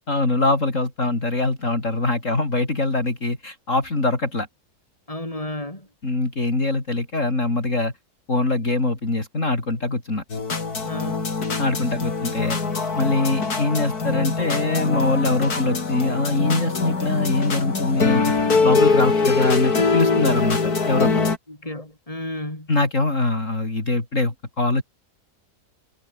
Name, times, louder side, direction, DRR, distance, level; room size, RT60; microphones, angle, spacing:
voice 1, 0.1-4.5 6.0-7.9 8.3-10.2 11.6-12.6 13.0-18.3 18.6-21.3 22.7-24.8, left 2 dB, 50° left, 4.6 m, -23 dB
voice 2, 5.1-5.9 10.8-11.3 19.2-19.3 21.5-22.7, left 1 dB, 20° left, 5.8 m, -33 dB
sound 1, 10.3-21.4, left 4 dB, 70° left, 3.5 m, -23 dB
omnidirectional pair, 1.7 m